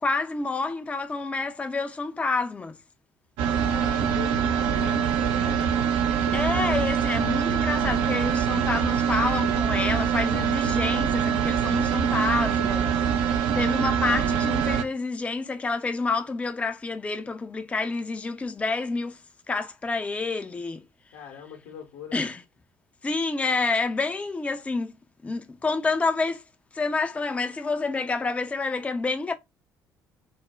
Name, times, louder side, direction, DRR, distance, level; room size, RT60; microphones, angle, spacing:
voice 1, 0.0-2.8 6.3-13.0 13.2-19.2 19.5-20.8 22.1-22.4 23.0-25.0 25.2-26.4 26.7-29.3, left 3 dB, 15° left, 0.3 m, -28 dB
sound 1, 3.4-14.8, right 8 dB, 60° right, 0.4 m, -24 dB
voice 2, 3.6-5.9 21.1-22.2, left 7 dB, 65° left, 0.8 m, -40 dB
2.4 x 2.0 x 3.0 m
figure-of-eight pair, 50°, 9 cm